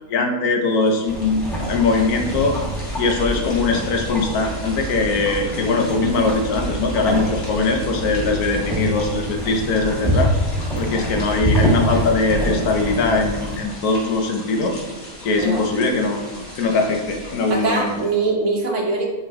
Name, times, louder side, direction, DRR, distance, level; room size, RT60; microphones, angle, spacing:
voice 1, 0.1-2.5 3.0-10.3 10.8-14.8 15.2-16.2 16.6-17.9, left 3 dB, 75° left, 2 dB, 1.3 m, -21 dB
sound 1, 0.6-18.3, left 1 dB, 45° left, 1.5 m, -39 dB
sound 2, 1.1-13.6, right 1 dB, ahead, 1.1 m, -25 dB
voice 2, 17.5-19.1, right 3 dB, 55° right, 0 dB, 1.2 m, -22 dB
8.2 x 3.3 x 3.5 m, 1.2 s
omnidirectional pair, 1.6 m